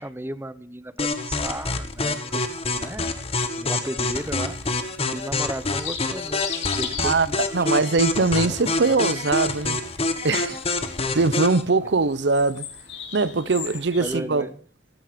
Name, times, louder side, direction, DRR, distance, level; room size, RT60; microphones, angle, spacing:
voice 1, 0.0-3.1 3.6-4.6 5.1-7.8 8.2-9.0 10.5-10.6 13.7-14.6, right 1 dB, 15° right, 0.8 m, -35 dB
sound 1, 1.0-11.6, left 3 dB, 35° left, 1.7 m, -26 dB
sound 2, 4.2-14.2, left 8 dB, 85° left, 2.9 m, -39 dB
voice 2, 7.5-9.8 10.2-10.6 11.1-12.7 13.1-14.5, right 3 dB, 75° right, 0.7 m, -21 dB
14.5 x 14.0 x 5.1 m
head